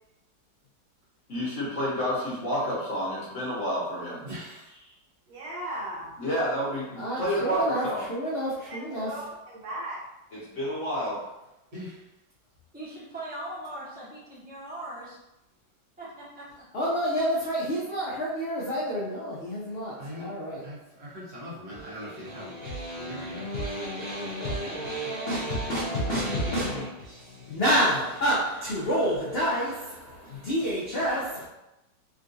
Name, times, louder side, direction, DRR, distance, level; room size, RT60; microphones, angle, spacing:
voice 1, 1.3-4.2 6.2-8.0 10.3-11.2, equal, 50° left, -7 dB, 1.1 m, -29 dB
voice 2, 4.2-4.8 11.7-12.1 20.0-20.3 20.6-22.6 22.9-23.5, left 1 dB, 55° right, -8 dB, 1.7 m, -41 dB
voice 3, 5.3-6.2 8.6-10.0 24.3-24.8 25.1-26.2, right 1 dB, 90° right, -5 dB, 1.6 m, -39 dB
voice 4, 7.0-9.1 16.7-20.6 21.8-31.5, equal, 80° left, -6 dB, 0.5 m, -29 dB
voice 5, 12.7-15.2 16.0-16.6, right 1 dB, 10° right, -9 dB, 0.7 m, -40 dB
3.7 x 2.3 x 2.6 m, 0.92 s
omnidirectional pair, 1.9 m